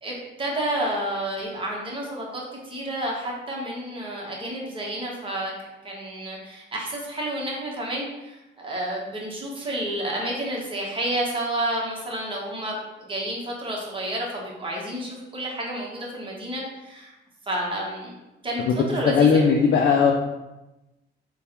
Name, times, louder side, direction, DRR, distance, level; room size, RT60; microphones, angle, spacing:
voice 1, 0.0-5.5 5.8-17.1 17.4-18.2 18.4-19.5, right 1 dB, 25° right, -3 dB, 1.1 m, -30 dB
voice 2, 19.0-20.1, left 6 dB, 65° left, 1 dB, 0.5 m, -17 dB
3.4 x 2.3 x 4.3 m, 0.98 s
cardioid pair, 90°, 20 cm